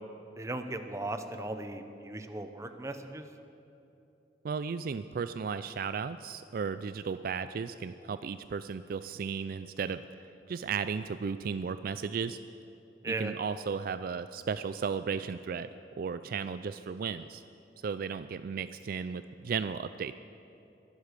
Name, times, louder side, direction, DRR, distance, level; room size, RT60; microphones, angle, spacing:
voice 1, 0.4-3.3 13.0-13.3, right 2 dB, 15° right, 7 dB, 0.8 m, -37 dB
voice 2, 4.4-10.0 10.5-12.4 13.1-15.7 16.0-17.4 17.8-20.1, right 6 dB, 55° right, 12 dB, 0.3 m, -35 dB
23.0 x 8.1 x 6.8 m, 2.9 s
head